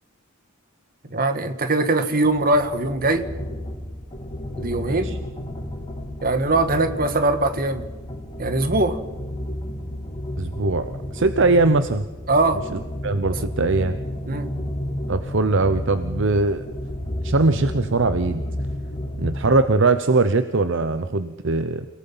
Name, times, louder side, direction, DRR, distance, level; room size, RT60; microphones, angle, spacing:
voice 1, 1.1-3.2 4.6-5.1 6.2-7.9 8.4-9.0 12.3-12.6 14.3-14.5, right 2 dB, 45° right, 9 dB, 1.7 m, -21 dB
sound 1, 2.2-19.7, left 1 dB, 25° left, 3.3 m, -32 dB
voice 2, 4.9-5.2 10.4-12.1 12.7-14.0 15.1-16.7 17.2-18.4 19.2-21.9, right 3 dB, 60° right, 11 dB, 0.8 m, -21 dB
29.5 x 18.0 x 5.6 m, 1.2 s
head